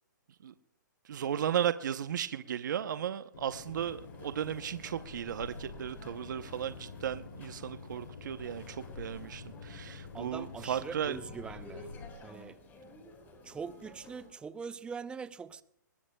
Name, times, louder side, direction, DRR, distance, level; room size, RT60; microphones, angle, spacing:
voice 1, 1.0-11.2, right 9 dB, 65° right, 0.7 m, -35 dB
sound 1, 3.3-12.1, left 4 dB, 85° left, 2.6 m, -48 dB
sound 2, 3.6-14.3, left 2 dB, 20° left, 4.1 m, -54 dB
voice 2, 10.1-11.9 12.2-12.6 13.4-15.6, right 5 dB, 10° right, 0.5 m, -42 dB
24.0 x 21.0 x 2.2 m
hypercardioid pair, 145°, 11 cm